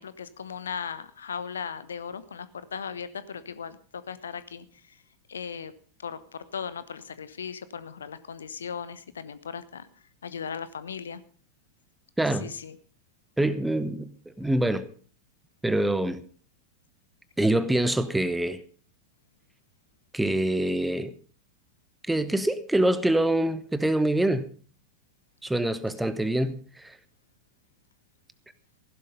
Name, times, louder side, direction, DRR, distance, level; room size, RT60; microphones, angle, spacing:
voice 1, 0.0-4.6 5.3-5.7 6.0-9.9 10.2-11.2 12.4-12.8, left 7 dB, 70° left, 1.0 m, -37 dB
voice 2, 12.2-12.5 13.4-14.1 14.4-14.9 15.6-16.2 17.4-18.6 20.1-21.1 22.1-24.5 25.4-27.0, right 1 dB, 5° right, 1.0 m, -25 dB
15.5 x 11.5 x 5.4 m
figure-of-eight pair, 90°, 0 cm